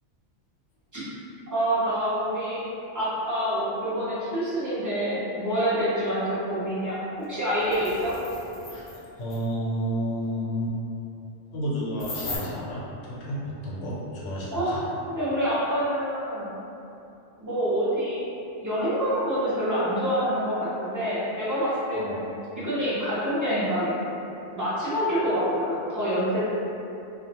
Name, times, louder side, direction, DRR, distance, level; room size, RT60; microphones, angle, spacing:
voice 1, 1.5-2.7 2.9-7.0 7.3-8.1 14.5-16.5 17.4-18.2 18.6-22.3 22.6-24.2 24.5-26.4, equal, 20° right, -10 dB, 0.5 m, -26 dB
sound 1, 7.2-7.3 7.6-9.0 9.3-9.4 12.0-12.4, left 2 dB, 55° left, 0.4 m, -37 dB
voice 2, 9.2-10.8 11.5-14.8 21.9-22.2, equal, 85° left, -6 dB, 1.0 m, -31 dB
2.4 x 2.3 x 2.8 m, 2.8 s
omnidirectional pair, 1.2 m